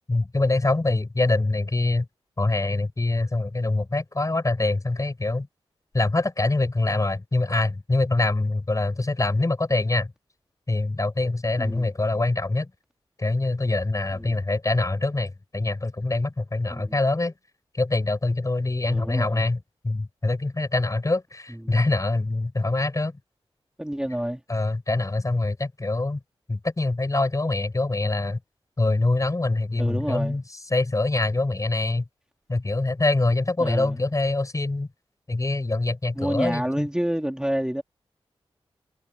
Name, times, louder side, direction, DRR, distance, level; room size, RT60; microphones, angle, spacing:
voice 1, 0.1-2.1 2.4-5.5 5.9-10.1 10.7-12.7 13.2-17.3 17.7-19.6 19.8-23.2 24.5-26.2 26.5-28.4 28.8-30.4 30.7-32.0 32.5-34.9 35.3-36.9, left 2 dB, 30° left, 6.4 m, -24 dB
voice 2, 11.6-11.9 14.2-14.4 16.7-17.0 18.9-19.5 21.5-21.7 23.8-24.4 29.8-30.4 33.6-34.0 36.1-37.8, equal, 5° right, 3.5 m, -28 dB
cardioid pair, 55°, 10 cm